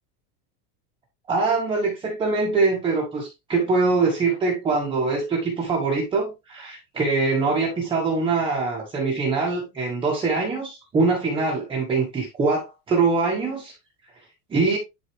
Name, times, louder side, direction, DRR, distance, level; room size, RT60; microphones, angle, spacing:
voice 1, 1.3-13.7 14.5-14.8, right 3 dB, 10° right, 1.1 m, -23 dB
11.0 x 4.1 x 3.1 m
supercardioid pair, 180°, 45 cm